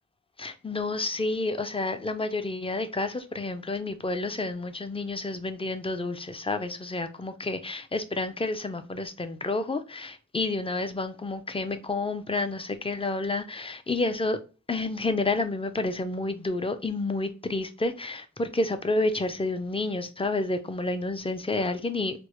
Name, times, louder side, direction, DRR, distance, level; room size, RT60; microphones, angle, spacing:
voice 1, 0.4-14.4 14.7-22.3, left 2 dB, 20° left, 0.4 m, -30 dB
4.5 x 2.0 x 3.0 m
wide cardioid pair, 60°, 30 cm